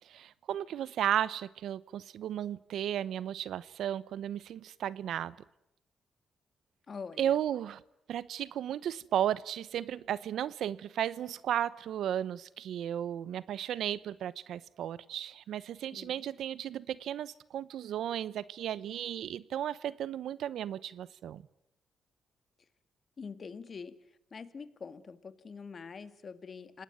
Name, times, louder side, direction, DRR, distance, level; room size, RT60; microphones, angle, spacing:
voice 1, 0.1-5.3 7.2-7.8 8.1-21.4, right 10 dB, 80° right, 19 dB, 0.9 m, -34 dB
voice 2, 6.9-7.4 15.9-16.1 23.2-24.0 24.3-26.8, left 5 dB, 45° left, 12 dB, 2.1 m, -45 dB
27.5 x 19.0 x 9.1 m, 0.83 s
cardioid pair, 80°, 0 cm